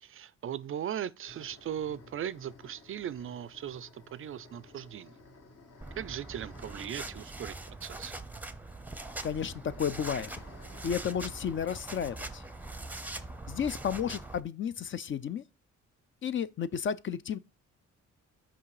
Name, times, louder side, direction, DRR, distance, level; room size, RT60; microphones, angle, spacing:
voice 1, 0.0-5.2 6.0-8.2, right 10 dB, 45° right, 0.4 m, -38 dB
sound 1, 1.3-12.7 12.9-13.0 13.6-14.3, left 3 dB, 60° left, 1.8 m, -56 dB
sound 2, 5.8-14.4, right 2 dB, 5° right, 0.7 m, -42 dB
voice 2, 9.2-10.3 10.8-12.4 13.5-15.4 16.2-17.4, left 8 dB, 40° left, 0.5 m, -32 dB
5.9 x 5.0 x 4.8 m
cardioid pair, 90°, 30 cm